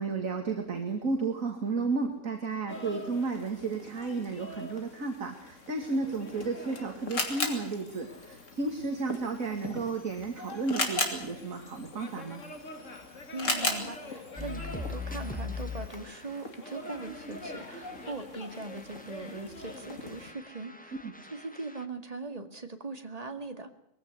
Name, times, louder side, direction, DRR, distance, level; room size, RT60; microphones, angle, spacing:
voice 1, 0.0-12.4 21.0-21.1, right 4 dB, 45° right, 4 dB, 2.6 m, -33 dB
sound 1, 2.7-20.3, left 2 dB, 40° left, 2.5 m, -45 dB
Camera, 6.1-16.0, left 3 dB, 65° left, 3.7 m, -37 dB
voice 2, 13.3-21.0 21.2-23.7, right 3 dB, 20° right, 6 dB, 2.1 m, -40 dB
sound 2, 14.4-18.2 18.5-21.9, left 4 dB, 5° left, 1.4 m, -42 dB
22.0 x 16.0 x 8.2 m, 0.79 s
omnidirectional pair, 2.0 m